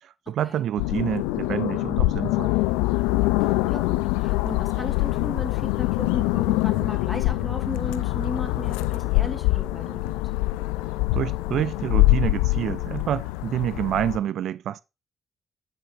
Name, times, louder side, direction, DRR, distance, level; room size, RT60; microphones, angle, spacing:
voice 1, 0.0-2.6 11.1-14.8, right 11 dB, 70° right, 0.3 m, -28 dB
sound 1, 0.8-14.2, left 19 dB, 90° left, 0.4 m, -24 dB
voice 2, 3.4-10.1, left 2 dB, 15° left, 2.4 m, -35 dB
sound 2, 8.0-13.0, left 11 dB, 70° left, 0.8 m, -43 dB
9.2 x 5.7 x 3.4 m
hypercardioid pair, 50°, 0 cm